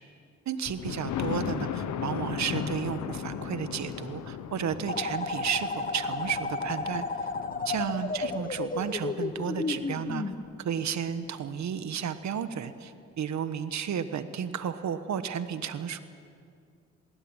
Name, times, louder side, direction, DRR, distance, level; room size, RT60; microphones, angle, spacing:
voice 1, 0.5-7.0 7.6-10.2 10.6-16.0, right 8 dB, 70° right, 11 dB, 1.3 m, -33 dB
Thunder, 0.7-10.4 10.9-11.0 11.5-11.6 11.8-11.9, left 8 dB, 85° left, 1.2 m, -37 dB
sound 1, 4.9-10.3, left 4 dB, 30° left, 1.3 m, -33 dB
21.0 x 18.0 x 9.0 m, 2.4 s
cardioid pair, 75°, 29 cm